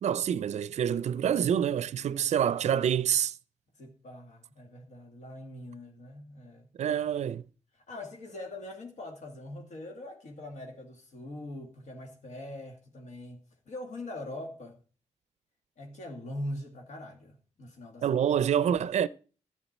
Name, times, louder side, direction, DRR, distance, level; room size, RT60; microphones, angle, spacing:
voice 1, 0.0-3.4 6.8-7.4 18.0-19.1, right 9 dB, 70° right, 0.4 m, -27 dB
voice 2, 3.8-6.7 7.7-14.8 15.8-18.1, left 1 dB, 80° left, 2.0 m, -42 dB
13.0 x 8.4 x 4.2 m
wide cardioid pair, 130°, 12 cm